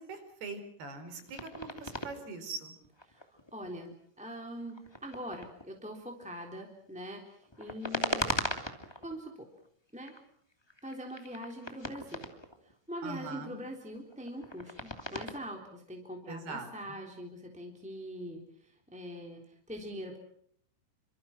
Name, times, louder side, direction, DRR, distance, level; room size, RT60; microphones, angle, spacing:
voice 1, 0.0-2.8 13.0-13.6 16.3-17.0, right 3 dB, 55° right, 9 dB, 6.0 m, -42 dB
sound 1, 1.1-2.1 2.7-3.9 4.7-5.8 7.3-9.1 9.6-10.3 10.5-12.7 13.4-15.4, left 1 dB, 15° left, 0.8 m, -38 dB
voice 2, 3.1-8.3 9.0-9.5 9.9-10.1 10.8-12.2 12.6-20.2, equal, ahead, 2 dB, 2.4 m, -43 dB
29.0 x 26.0 x 6.0 m, 0.66 s
omnidirectional pair, 5.8 m